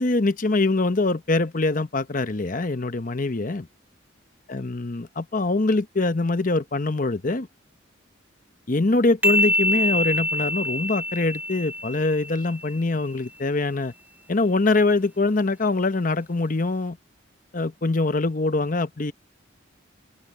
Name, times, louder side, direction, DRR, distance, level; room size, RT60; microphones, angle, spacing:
voice 1, 0.0-3.7 4.5-7.5 8.7-13.9 14.3-17.0 17.5-19.1, left 2 dB, 45° left, 0.9 m, -23 dB
sound 1, 9.2-12.8, left 1 dB, 10° right, 0.9 m, -25 dB
open air
head